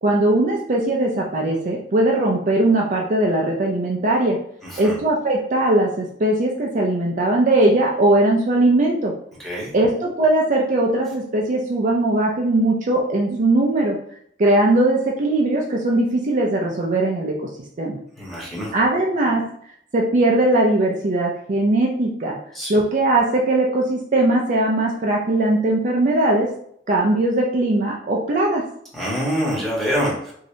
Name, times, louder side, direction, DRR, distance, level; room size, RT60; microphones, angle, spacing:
voice 1, 0.0-4.4 4.8-9.1 9.7-14.0 14.4-17.3 17.8-18.0 18.7-19.4 19.9-22.4 22.7-26.5 26.9-28.6, right 2 dB, 45° right, -1 dB, 0.4 m, -19 dB
voice 2, 4.6-5.0 9.4-9.7 18.2-18.7 22.5-22.8 28.9-30.3, equal, ahead, -7 dB, 1.1 m, -25 dB
3.1 x 2.8 x 2.7 m, 0.67 s
head